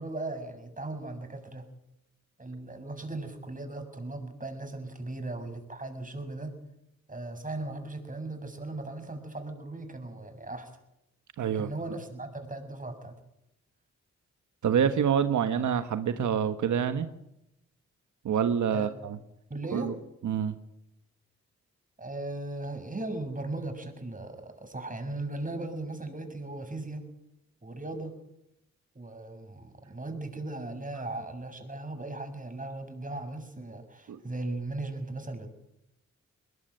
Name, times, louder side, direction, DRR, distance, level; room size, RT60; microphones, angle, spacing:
voice 1, 0.0-1.7 2.4-6.6 7.1-10.7 11.5-13.2 18.7-18.9 19.5-19.9 22.0-27.1 27.6-28.1 28.9-35.5, right 2 dB, 25° right, 6 dB, 6.8 m, -37 dB
voice 2, 11.4-11.7 14.6-17.1 18.2-19.2 19.7-19.9 20.2-20.6 34.1-34.2, right 8 dB, 85° right, 10 dB, 1.3 m, -27 dB
21.5 x 20.5 x 9.2 m, 0.83 s
cardioid pair, 65°, 29 cm